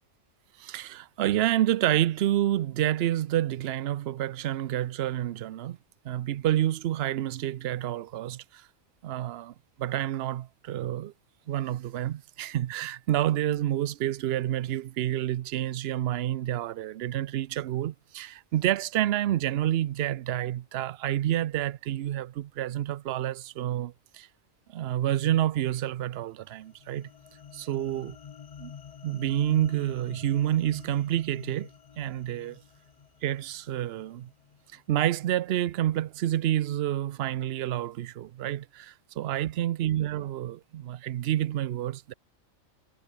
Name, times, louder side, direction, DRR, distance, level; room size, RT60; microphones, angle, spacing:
voice 1, 0.6-5.8 6.0-8.7 9.0-11.1 11.5-24.3 24.7-27.1 27.5-28.2 28.6-28.7 29.0-31.7 32.0-32.6 33.2-34.3 34.7-42.1, right 12 dB, 60° right, 0.7 m, -29 dB
sound 1, 26.4-34.8, left 7 dB, 55° left, 0.4 m, -48 dB
omnidirectional pair, 1.4 m